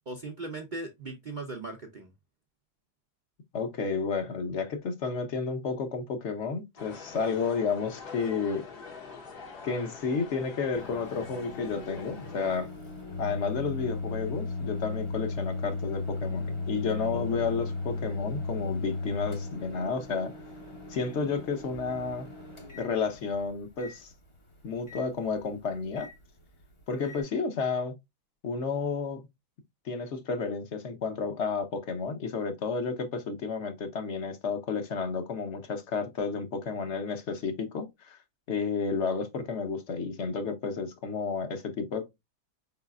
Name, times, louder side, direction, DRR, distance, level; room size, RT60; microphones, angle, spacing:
voice 1, 0.1-2.1 17.1-17.5, right 2 dB, 50° right, 0.5 m, -39 dB
voice 2, 3.5-8.6 9.6-12.7 13.2-20.3 20.9-22.3 22.8-24.1 24.6-26.1 26.9-27.9 28.4-29.2 29.8-38.2 38.5-42.1, left 5 dB, 50° left, 1.0 m, -31 dB
sound 1, 6.8-12.6, left 4 dB, 65° left, 1.7 m, -45 dB
Microwave oven, 10.7-27.2, left 3 dB, 25° left, 0.6 m, -37 dB
4.9 x 4.0 x 2.4 m
omnidirectional pair, 1.8 m